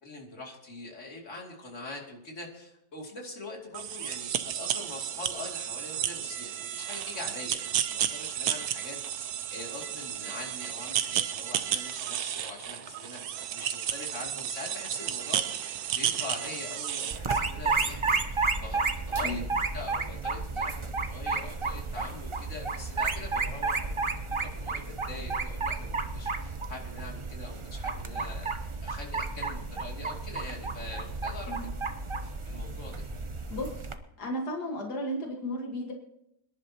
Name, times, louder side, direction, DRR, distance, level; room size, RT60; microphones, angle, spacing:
voice 1, 0.0-9.2 9.5-18.8 19.1-19.4 19.7-20.8 21.1-24.1 24.4-28.5 28.8-31.5 32.2-33.0, left 2 dB, 50° left, -1 dB, 3.0 m, -43 dB
sound 1, 3.7-17.2, right 10 dB, 75° right, 1.3 m, -32 dB
sound 2, 17.1-33.9, right 4 dB, 35° right, 0.4 m, -32 dB
voice 2, 33.5-33.9 34.2-35.9, equal, 80° left, 1 dB, 2.2 m, -34 dB
26.5 x 11.0 x 2.9 m, 0.81 s
omnidirectional pair, 1.7 m